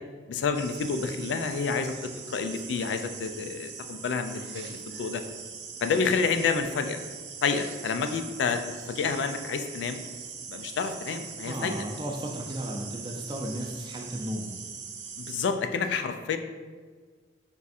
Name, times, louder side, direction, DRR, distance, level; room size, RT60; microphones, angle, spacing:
voice 1, 0.3-1.9 2.3-5.2 5.8-7.0 7.4-8.6 8.9-10.0 10.5-11.8 15.2-16.4, left 5 dB, 80° left, 8 dB, 0.3 m, -29 dB
sound 1, 0.5-15.5, right 6 dB, 75° right, 0.5 m, -41 dB
voice 2, 11.4-14.5, right 1 dB, 25° right, 1 dB, 0.4 m, -34 dB
3.5 x 2.5 x 4.1 m, 1.5 s
head